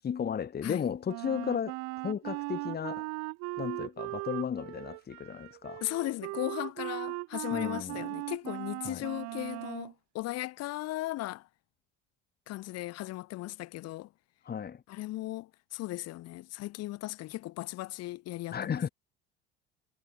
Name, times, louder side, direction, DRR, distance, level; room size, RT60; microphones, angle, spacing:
voice 1, 0.0-3.1 3.6-5.8 7.5-8.0 8.8-9.1 14.4-14.8 18.5-18.9, left 7 dB, 35° left, 2.3 m, -34 dB
Wind instrument woodwind instrument, 1.1-9.9, right 26 dB, 70° right, 5.9 m, -38 dB
voice 2, 5.8-11.5 12.5-14.1 14.9-18.9, left 17 dB, 60° left, 3.6 m, -37 dB
hypercardioid pair, 80°, 29 cm